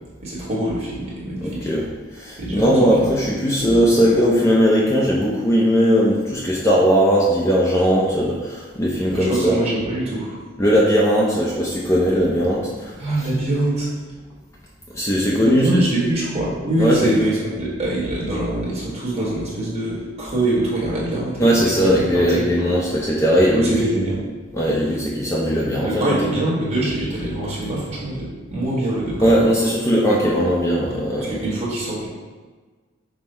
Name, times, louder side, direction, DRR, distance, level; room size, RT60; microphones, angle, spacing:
voice 1, 0.2-1.7 2.4-3.1 3.6-3.8 9.1-10.4 13.0-13.9 15.4-21.9 22.3-22.5 23.5-24.3 25.8-29.5 31.2-32.1, right 1 dB, 30° right, -6 dB, 1.2 m, -24 dB
voice 2, 1.4-1.8 2.1-9.6 10.6-13.0 14.9-15.7 16.8-17.1 21.4-23.7 24.5-26.2 29.2-31.4, equal, 15° left, -4 dB, 0.4 m, -18 dB
5.4 x 2.0 x 4.3 m, 1.4 s
head